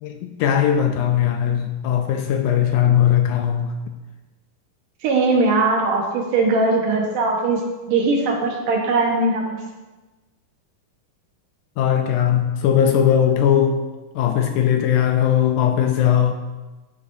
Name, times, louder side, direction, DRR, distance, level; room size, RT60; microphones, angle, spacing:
voice 1, 0.0-3.7 11.8-13.8 14.2-16.3, left 9 dB, 80° left, 1.9 m, -19 dB
voice 2, 5.0-9.6, right 3 dB, 70° right, 2.8 m, -20 dB
13.5 x 9.3 x 2.7 m
omnidirectional pair, 3.9 m